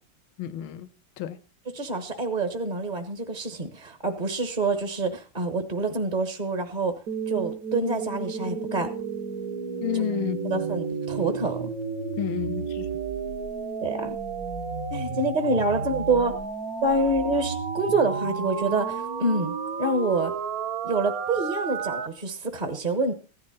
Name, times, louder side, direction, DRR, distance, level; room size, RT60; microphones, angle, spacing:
voice 1, 0.4-0.9 1.2-1.4 9.8-10.7 12.2-12.9, left 13 dB, 80° left, 1.7 m, -30 dB
voice 2, 1.7-7.0 7.3-8.9 9.9-10.0 10.5-11.7 13.8-14.2 14.9-16.4 16.8-20.3 20.8-23.1, right 2 dB, 25° right, 1.1 m, -27 dB
sound 1, 7.1-22.1, right 6 dB, 50° right, 1.5 m, -32 dB
15.5 x 11.5 x 4.2 m
omnidirectional pair, 2.3 m